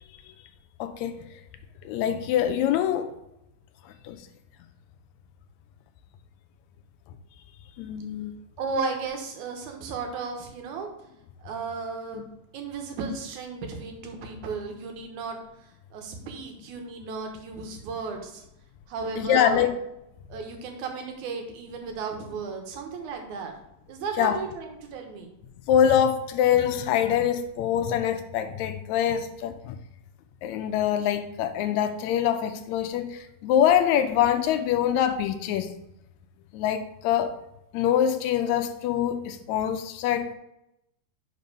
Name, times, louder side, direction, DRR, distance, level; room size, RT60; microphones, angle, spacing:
voice 1, 0.8-1.2 1.8-3.1 4.0-4.2 7.8-8.3 12.1-12.2 19.2-19.7 24.2-24.4 25.7-29.7 30.4-35.7 36.5-37.3 37.7-40.4, left 9 dB, 80° left, 1.9 m, -24 dB
voice 2, 8.6-10.9 11.4-15.4 15.9-18.4 18.9-19.7 20.3-23.5 23.9-25.3, right 4 dB, 90° right, 2.5 m, -34 dB
5.3 x 5.3 x 5.3 m
omnidirectional pair, 3.3 m